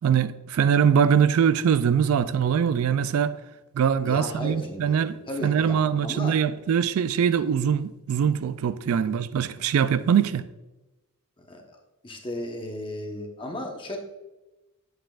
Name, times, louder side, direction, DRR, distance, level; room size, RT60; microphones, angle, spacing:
voice 1, 0.0-3.4 3.7-10.4, right 7 dB, 65° right, 0.3 m, -22 dB
voice 2, 4.0-5.0 5.3-6.4 8.9-9.0 11.5-11.8 12.0-14.0, left 1 dB, 20° left, 1.0 m, -35 dB
8.8 x 7.8 x 2.4 m
head